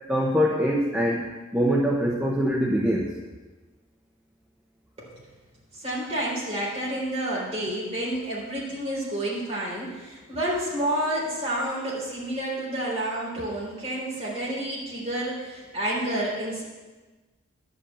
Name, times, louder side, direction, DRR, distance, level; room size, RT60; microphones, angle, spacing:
voice 1, 0.1-3.1, equal, 5° right, -2 dB, 0.8 m, -24 dB
voice 2, 5.7-16.6, right 1 dB, 30° right, -5 dB, 3.9 m, -29 dB
11.0 x 5.4 x 8.7 m, 1.3 s
head